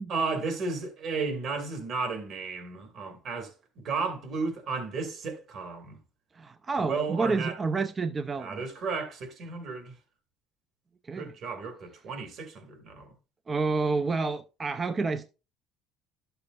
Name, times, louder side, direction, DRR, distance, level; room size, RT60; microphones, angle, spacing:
voice 1, 0.1-6.0 6.8-7.6 8.4-9.9 11.1-13.1, right 4 dB, 55° right, 2.2 m, -33 dB
voice 2, 6.4-8.6 11.1-11.3 13.5-15.3, right 4 dB, 30° right, 0.5 m, -29 dB
11.5 x 6.8 x 2.5 m
cardioid pair, 105°, 0 cm